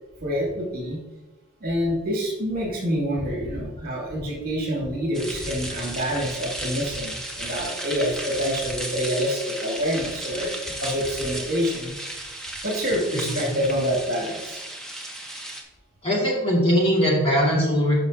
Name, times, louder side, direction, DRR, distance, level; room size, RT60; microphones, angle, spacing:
voice 1, 0.2-1.0 1.6-11.9 12.6-14.6, equal, 45° right, -3 dB, 2.4 m, -27 dB
sound 1, 5.1-15.6, right 1 dB, ahead, 0.9 m, -34 dB
voice 2, 13.2-13.6 16.0-18.1, equal, 25° left, -4 dB, 2.2 m, -21 dB
11.0 x 6.0 x 2.8 m, 1.1 s
head